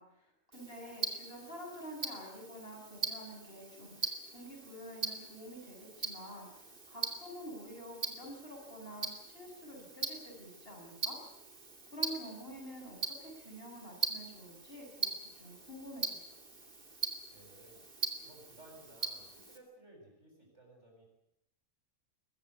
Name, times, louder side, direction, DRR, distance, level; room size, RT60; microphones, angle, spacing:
voice 1, 0.0-11.2 11.9-15.1 15.4-16.3, equal, 45° left, 0 dB, 6.9 m, -48 dB
Tick-tock, 0.5-19.6, right 4 dB, 40° right, 2.7 m, -42 dB
voice 2, 17.3-17.9 18.2-21.0, right 2 dB, 60° right, 0 dB, 8.2 m, -58 dB
22.0 x 15.0 x 9.7 m, 0.83 s
omnidirectional pair, 1.3 m